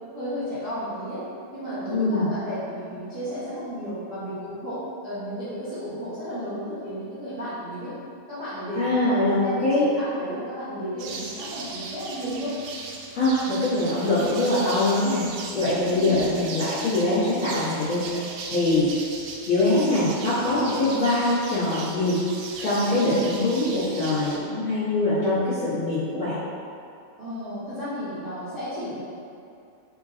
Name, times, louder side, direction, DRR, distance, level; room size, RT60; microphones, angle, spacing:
voice 1, 0.1-1.2 1.5-7.9 8.3-12.6 14.2-14.3 15.8-16.2 23.0-23.3 27.2-29.0, equal, 55° right, -15 dB, 1.1 m, -33 dB
voice 2, 1.9-2.3 8.7-9.8 13.1-15.2 15.5-18.0 18.5-18.9 19.5-22.2 22.6-26.4, left 2 dB, 60° left, -14 dB, 1.4 m, -23 dB
sound 1, 11.0-24.4, right 4 dB, 85° right, 2.1 m, -37 dB
5.1 x 2.2 x 3.8 m, 2.5 s
omnidirectional pair, 3.7 m